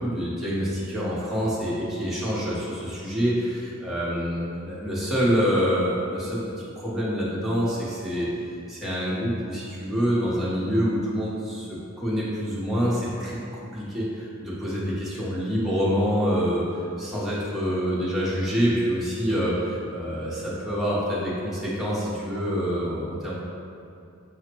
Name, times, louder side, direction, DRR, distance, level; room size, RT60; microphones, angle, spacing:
voice 1, 0.0-6.4 6.8-8.3 8.7-13.4 13.7-16.6 17.0-23.3, equal, ahead, -9 dB, 0.8 m, -26 dB
5.8 x 2.1 x 2.9 m, 2.5 s
head